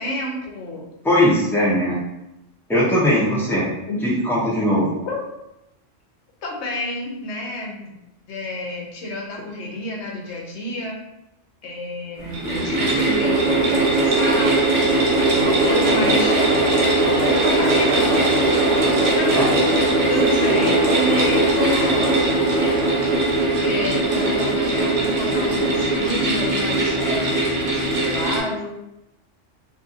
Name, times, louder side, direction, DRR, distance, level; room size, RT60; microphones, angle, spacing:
voice 1, 0.0-0.9 3.9-4.1 5.1-5.2 6.4-8.0 8.3-11.0 11.6-16.4 17.3-18.8 19.2-19.4 20.1-22.1 23.6-28.7, left 1 dB, 70° left, 0 dB, 0.9 m, -29 dB
voice 2, 1.0-2.0 2.7-3.7 4.0-4.9 19.3-19.4, left 1 dB, ahead, -7 dB, 0.6 m, -19 dB
sound 1, 12.2-28.4, right 2 dB, 90° right, 1.2 m, -19 dB
2.6 x 2.5 x 2.6 m, 0.90 s
omnidirectional pair, 1.3 m